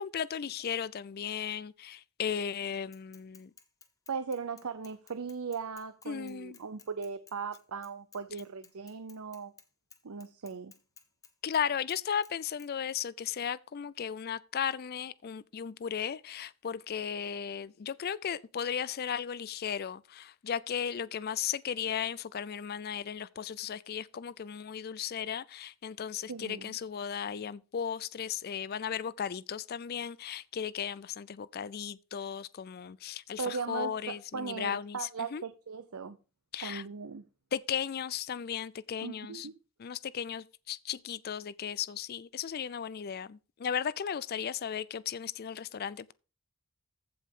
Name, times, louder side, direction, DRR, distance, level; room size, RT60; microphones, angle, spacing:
voice 1, 0.0-3.5 6.1-6.6 11.4-35.0 35.3-35.4 36.5-36.8 37.5-39.5 39.8-46.1, left 8 dB, 45° left, 0.4 m, -36 dB
Bicycle / Mechanisms, 2.9-9.7 9.9-11.6 11.9-12.3 12.6-12.7, left 6 dB, 15° left, 1.0 m, -56 dB
voice 2, 4.1-9.5 10.0-10.7 26.3-26.8 33.4-36.2 36.6-37.2 39.0-39.5, right 5 dB, 85° right, 0.7 m, -38 dB
15.0 x 5.2 x 3.7 m
head